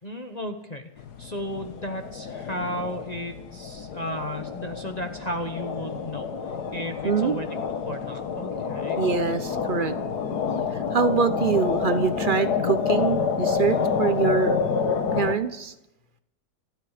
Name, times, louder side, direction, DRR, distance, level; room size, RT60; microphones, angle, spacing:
voice 1, 0.0-0.9 1.2-6.3 6.7-7.5 7.8-9.0, equal, 25° left, 5 dB, 1.0 m, -34 dB
sound 1, 1.0-15.3, left 6 dB, 60° left, 1.7 m, -28 dB
voice 2, 7.0-7.4 9.0-10.0 10.9-14.6 15.2-15.7, right 5 dB, 45° right, 10 dB, 0.6 m, -24 dB
28.5 x 9.7 x 5.0 m, 0.85 s
omnidirectional pair, 2.0 m